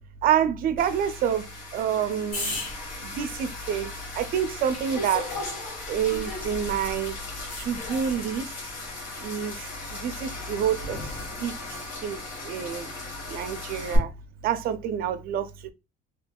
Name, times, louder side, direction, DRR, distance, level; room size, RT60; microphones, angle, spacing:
voice 1, 0.2-2.6 3.0-5.3 5.9-7.2 7.6-8.5 9.2-11.0 11.4-12.9 13.3-14.1 14.4-15.7, right 8 dB, 45° right, 0.4 m, -28 dB
sound 1, 0.8-14.0, left 2 dB, 80° left, 1.5 m, -37 dB
sound 2, 2.3-6.7 7.5-8.3 11.0-11.3, left 2 dB, 40° left, 1.6 m, -40 dB
3.4 x 2.8 x 2.2 m
cardioid pair, 170°, 20 cm